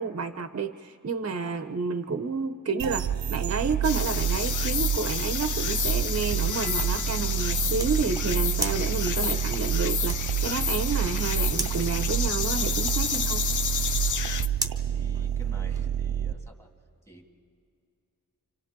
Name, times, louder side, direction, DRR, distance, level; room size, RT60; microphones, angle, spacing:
voice 1, 0.0-13.5, right 4 dB, 45° right, 8 dB, 0.8 m, -30 dB
sound 1, 2.8-16.3, right 9 dB, 80° right, 0.6 m, -28 dB
sound 2, 3.8-14.5, left 7 dB, 60° left, 0.7 m, -30 dB
sound 3, 5.5-15.9, right 2 dB, 10° right, 1.0 m, -41 dB
voice 2, 14.9-16.7 17.0-17.3, equal, 10° left, 2 dB, 2.1 m, -48 dB
29.5 x 26.0 x 3.8 m, 2.5 s
wide cardioid pair, 130°, 34 cm